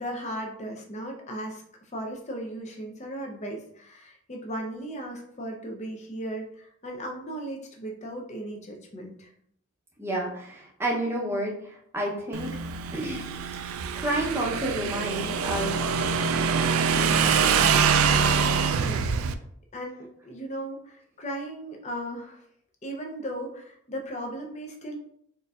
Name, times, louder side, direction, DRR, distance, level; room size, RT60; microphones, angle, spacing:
voice 1, 0.0-9.3 18.7-19.1 19.7-22.4 22.8-25.0, right 1 dB, 35° left, 1 dB, 0.6 m, -36 dB
voice 2, 10.0-12.5 12.9-13.3 13.9-15.8 16.9-17.6, right 1 dB, 10° right, -3 dB, 0.7 m, -30 dB
Motorcycle / Engine, 12.3-19.3, right 6 dB, 70° right, 0.3 m, -24 dB
4.4 x 2.6 x 2.4 m, 0.69 s
head